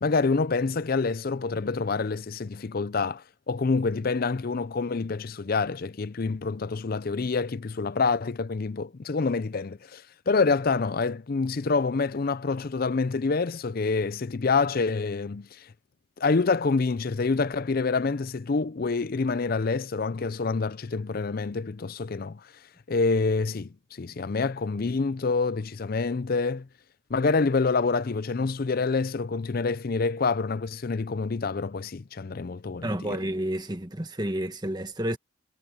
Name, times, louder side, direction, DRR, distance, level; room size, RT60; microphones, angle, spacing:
voice 1, 0.0-15.7 16.2-22.4 22.9-26.7 27.1-33.2, left 4 dB, 45° left, 0.5 m, -27 dB
voice 2, 32.8-35.2, right 1 dB, 20° right, 1.4 m, -30 dB
head